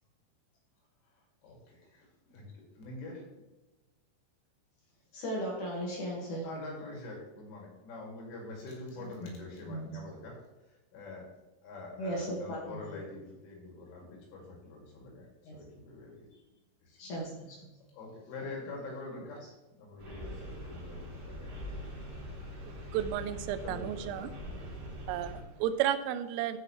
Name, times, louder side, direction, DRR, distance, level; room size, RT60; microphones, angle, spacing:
voice 1, 1.4-2.5 2.8-3.2 6.4-10.4 10.9-11.2 11.6-15.2 15.5-16.3 16.8-17.0 17.9-19.4 19.8-21.9 23.6-24.3, left 3 dB, 80° left, -2 dB, 4.9 m, -45 dB
voice 2, 5.1-6.5 9.0-9.3 9.6-10.1 12.0-12.8 15.4-15.6 17.0-17.7 18.4-18.5, right 1 dB, 55° left, -2 dB, 2.5 m, -37 dB
sound 1, 20.0-25.4, equal, 45° right, 4.3 m, -43 dB
voice 3, 22.7-24.3 25.1-26.6, right 11 dB, 90° right, 10 dB, 3.3 m, -33 dB
14.0 x 6.0 x 3.2 m, 1.1 s
omnidirectional pair, 5.7 m